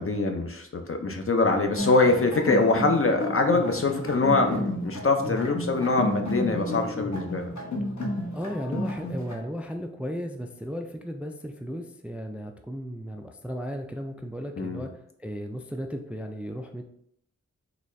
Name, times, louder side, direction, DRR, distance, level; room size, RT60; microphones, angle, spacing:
voice 1, 0.0-7.5 14.6-14.8, left 3 dB, 45° left, 4 dB, 0.6 m, -24 dB
sound 1, 1.8-9.3, left 1 dB, 70° left, 1.0 m, -32 dB
voice 2, 8.3-16.8, equal, 5° right, 4 dB, 0.3 m, -35 dB
4.0 x 2.3 x 3.1 m, 0.71 s
wide cardioid pair, 45°, 30 cm